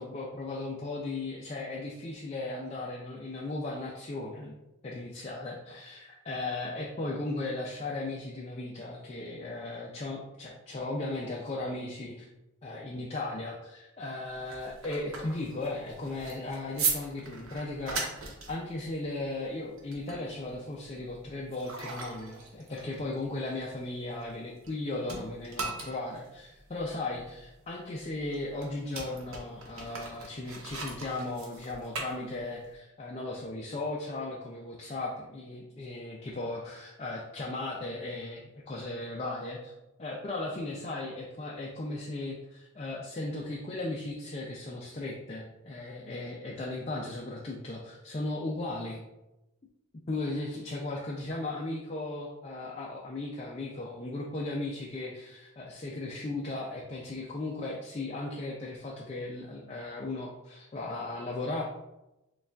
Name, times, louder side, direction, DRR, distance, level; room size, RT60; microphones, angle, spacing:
voice 1, 0.0-4.6 4.8-12.3 12.6-18.0 18.5-39.7 40.0-49.0 50.1-61.6, left 2 dB, 30° left, -3 dB, 0.4 m, -36 dB
sound 1, 14.3-24.8 25.0-32.7, right 4 dB, 80° right, 0.8 m, -39 dB
6.6 x 2.3 x 2.3 m, 0.96 s
head